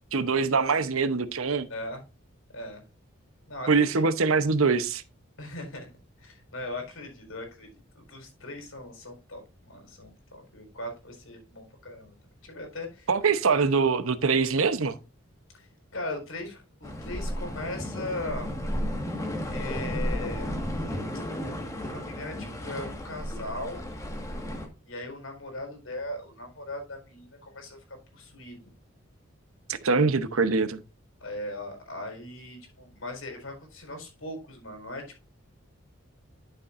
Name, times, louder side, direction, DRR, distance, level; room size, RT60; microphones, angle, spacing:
voice 1, 0.1-1.7 3.7-5.0 13.1-15.0 29.7-30.8, right 4 dB, 85° right, 0.9 m, -23 dB
voice 2, 1.7-2.0 2.5-2.8 3.5-4.0 5.4-5.9 6.2-12.1 12.4-13.1 13.5-13.6 15.5-18.5 19.5-20.6 21.9-23.9 24.8-28.7 30.0-30.2 31.2-35.2, left 1 dB, 80° left, 4.4 m, -39 dB
sound 1, 16.8-24.7, equal, 15° left, 1.6 m, -33 dB
11.5 x 7.0 x 2.6 m
head